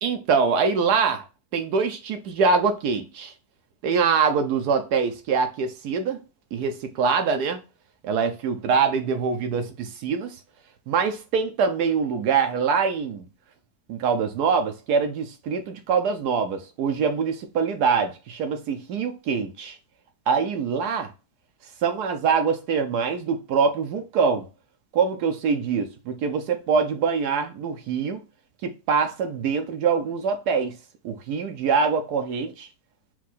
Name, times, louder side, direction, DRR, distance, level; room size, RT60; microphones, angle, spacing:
voice 1, 0.0-1.2 1.5-3.3 3.8-6.2 6.5-7.6 8.0-10.4 10.9-13.3 13.9-19.8 20.3-21.1 21.8-24.5 24.9-28.2 28.6-30.8 31.0-32.7, right 5 dB, 75° right, 1.1 m, -24 dB
4.6 x 2.3 x 4.0 m
omnidirectional pair, 1.7 m